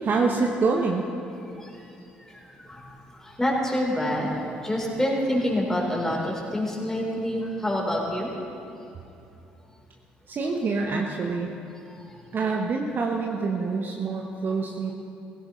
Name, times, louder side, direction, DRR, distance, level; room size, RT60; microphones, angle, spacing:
voice 1, 0.0-1.1 10.3-11.5 12.3-14.9, right 4 dB, 45° right, 1 dB, 1.1 m, -26 dB
voice 2, 2.2-8.3 12.0-12.1, left 1 dB, 10° left, -2 dB, 3.8 m, -27 dB
17.0 x 16.0 x 3.2 m, 2.8 s
hypercardioid pair, 50°, 5 cm